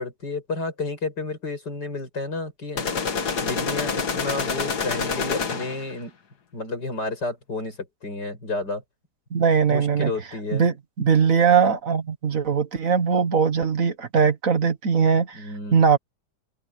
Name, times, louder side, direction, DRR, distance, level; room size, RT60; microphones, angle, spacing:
voice 1, 0.0-2.9 3.4-6.1 6.5-7.8 8.0-8.8 9.7-10.7 15.3-15.8, left 3 dB, 90° left, 7.7 m, -31 dB
sound 1, 2.8-5.9, left 5 dB, 70° left, 2.3 m, -27 dB
voice 2, 9.3-10.1 10.5-15.5 15.7-16.0, right 6 dB, 55° right, 1.8 m, -20 dB
open air
omnidirectional pair, 1.8 m